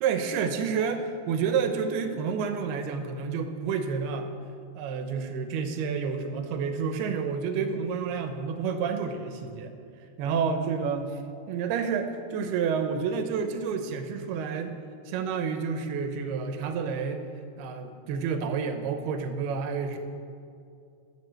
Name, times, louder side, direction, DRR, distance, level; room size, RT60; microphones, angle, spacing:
voice 1, 0.0-4.3 4.8-9.7 10.2-11.2 11.5-14.8 15.1-17.2 17.6-20.0, right 6 dB, 85° right, 7 dB, 2.9 m, -29 dB
14.0 x 7.5 x 7.7 m, 2.5 s
omnidirectional pair, 4.5 m